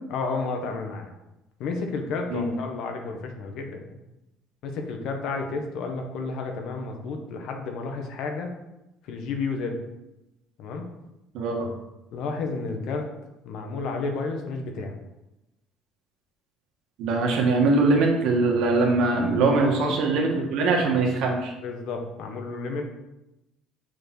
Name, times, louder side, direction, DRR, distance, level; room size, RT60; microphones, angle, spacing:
voice 1, 0.1-1.1 1.6-3.9 4.6-8.5 9.0-9.8 10.6-10.9 12.1-13.1 13.4-15.0 19.6-19.8 21.6-22.8, left 4 dB, 70° left, 4 dB, 1.3 m, -31 dB
voice 2, 11.3-11.7 17.0-21.5, right 3 dB, 70° right, 0 dB, 1.8 m, -22 dB
6.3 x 4.3 x 6.1 m, 0.95 s
cardioid pair, 105°, 0 cm